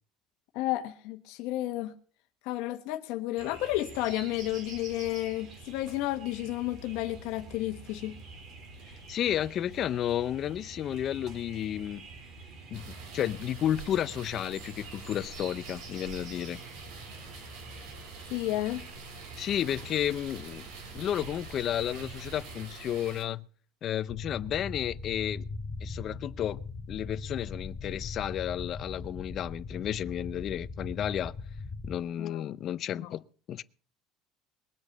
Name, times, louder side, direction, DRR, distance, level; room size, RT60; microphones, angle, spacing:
voice 1, 0.5-1.9 2.4-8.2 18.3-18.9 32.2-32.6 33.0-33.1, left 16 dB, 75° left, 1.2 m, -32 dB
sound 1, 3.4-22.7, right 3 dB, 50° right, 3.4 m, -47 dB
voice 2, 9.1-12.1 12.7-12.9 13.1-16.6 19.4-20.7 20.9-23.4 23.8-25.4 25.8-26.6 26.9-31.3 31.8-33.2 33.5-33.6, left 11 dB, 40° left, 0.6 m, -32 dB
sound 2, 12.7-23.2, right 4 dB, 75° right, 5.3 m, -46 dB
sound 3, 24.1-32.0, left 3 dB, 25° left, 1.6 m, -39 dB
21.0 x 8.1 x 6.6 m
cardioid pair, 145°, 0 cm